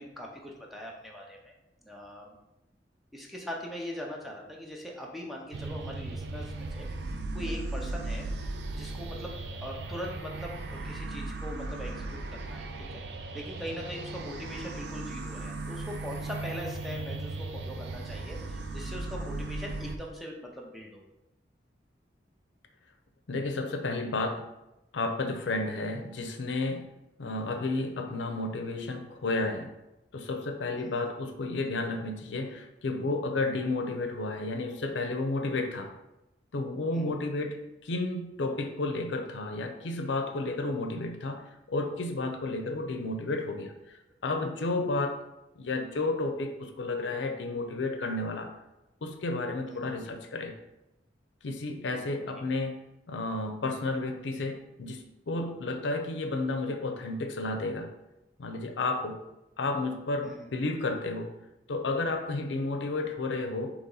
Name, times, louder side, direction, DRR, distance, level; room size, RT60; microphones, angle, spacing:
voice 1, 0.0-1.5 1.8-2.3 3.1-8.3 8.7-9.3 9.6-13.0 13.3-21.0 30.8-31.1 36.9-37.2 49.7-50.2 60.2-60.5, equal, ahead, -2 dB, 0.6 m, -41 dB
sound 1, 5.5-20.0, right 2 dB, 65° right, 0.4 m, -37 dB
voice 2, 23.3-24.4 24.9-26.9 27.2-29.8 30.1-35.9 36.5-41.4 41.7-45.2 45.6-48.5 49.0-50.5 51.4-52.8 53.1-57.9 58.4-59.2 59.6-61.3 61.7-63.7, left 2 dB, 80° left, 5 dB, 0.5 m, -32 dB
4.1 x 2.9 x 3.9 m, 0.94 s
head